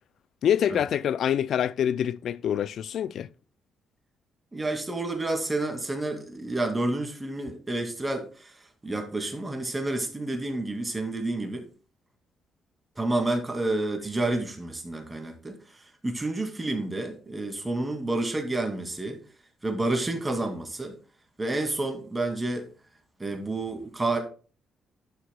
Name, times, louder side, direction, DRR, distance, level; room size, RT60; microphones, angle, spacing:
voice 1, 0.4-3.3, left 9 dB, 65° left, 0.3 m, -26 dB
voice 2, 4.5-8.5 8.8-11.6 13.0-15.5 16.0-19.2 19.6-20.9 21.4-22.7 23.2-24.2, right 2 dB, 20° right, 2.2 m, -29 dB
11.5 x 6.5 x 2.2 m
cardioid pair, 90°, 0 cm